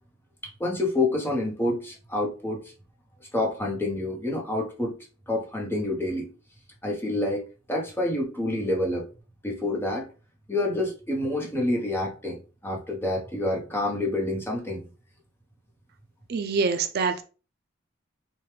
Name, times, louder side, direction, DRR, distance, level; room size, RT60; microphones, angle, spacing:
voice 1, 0.6-2.7 3.3-4.9 5.3-6.3 6.8-9.1 9.4-10.1 10.5-14.8, left 1 dB, 10° left, 0.9 m, -28 dB
voice 2, 16.3-17.2, right 4 dB, 50° right, 0.4 m, -25 dB
4.5 x 2.3 x 3.2 m
head